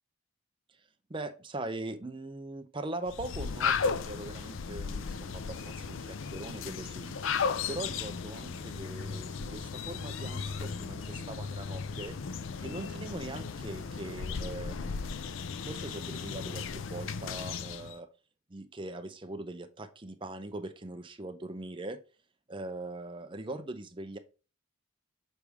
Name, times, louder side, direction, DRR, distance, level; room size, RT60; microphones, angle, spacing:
voice 1, 1.1-7.2 7.7-15.3 15.6-18.1 18.5-22.0 22.5-24.2, right 2 dB, 25° right, 0.6 m, -41 dB
sound 1, 3.1-17.9, left 5 dB, 65° left, 0.4 m, -36 dB
6.8 x 4.7 x 3.4 m
head